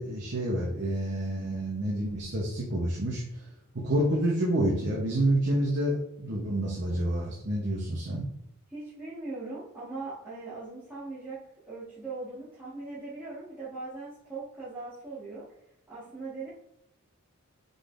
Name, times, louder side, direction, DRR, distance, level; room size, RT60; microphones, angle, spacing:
voice 1, 0.0-3.2 3.7-8.2, right 1 dB, 50° right, -4 dB, 0.9 m, -28 dB
voice 2, 8.7-11.4 11.7-15.4 15.9-16.5, right 3 dB, 10° right, -13 dB, 1.4 m, -40 dB
5.2 x 3.9 x 2.5 m, 0.81 s
head